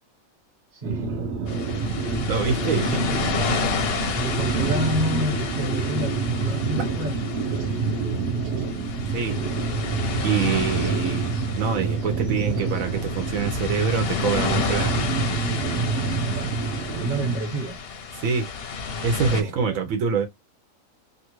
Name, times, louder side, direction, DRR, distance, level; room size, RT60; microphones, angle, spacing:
voice 1, 0.7-1.3 2.3-3.2 4.1-7.4 10.6-10.9 15.9-17.8 19.3-19.8, right 1 dB, 40° right, 1.0 m, -30 dB
sound 1, 0.8-17.4, right 4 dB, 60° right, 0.8 m, -27 dB
sound 2, 1.5-19.4, left 5 dB, 60° left, 0.7 m, -31 dB
voice 2, 1.7-3.0 3.5-3.7 9.1-9.4 10.2-15.0 18.2-18.5 19.0-20.3, right 6 dB, 75° right, 1.1 m, -26 dB
2.9 x 2.3 x 2.9 m
omnidirectional pair, 1.4 m